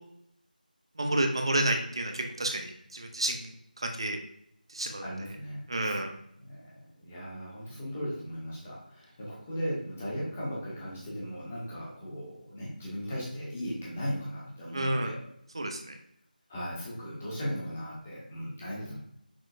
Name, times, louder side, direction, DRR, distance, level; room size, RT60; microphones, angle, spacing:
voice 1, 1.0-4.2 4.7-5.0 5.7-6.1 14.7-15.2 15.5-15.9, right 1 dB, 35° right, 4 dB, 0.5 m, -30 dB
voice 2, 5.0-6.1 6.5-6.6 7.0-15.2 16.5-19.0, equal, 10° left, -6 dB, 0.6 m, -37 dB
6.0 x 3.0 x 2.6 m, 0.74 s
figure-of-eight pair, 175°, 5 cm